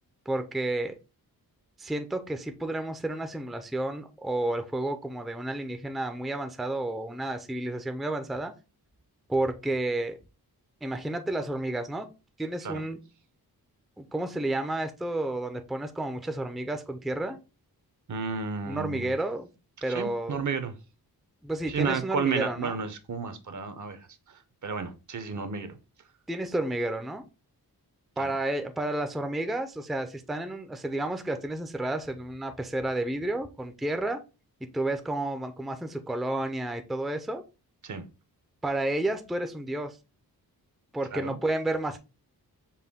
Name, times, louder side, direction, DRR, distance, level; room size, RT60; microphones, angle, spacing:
voice 1, 0.3-0.9 1.8-8.5 9.3-10.2 10.8-12.1 12.4-13.0 14.0-17.4 18.7-19.5 19.8-20.3 21.4-22.8 26.3-27.2 28.2-34.2 34.7-37.4 38.6-40.0 40.9-42.0, right 1 dB, ahead, 0.4 m, -31 dB
voice 2, 18.1-19.1 19.9-20.8 21.7-25.8 28.2-28.3 37.8-38.0 41.1-41.4, right 5 dB, 50° right, 0.7 m, -32 dB
5.5 x 2.2 x 3.5 m
wide cardioid pair, 85°, 38 cm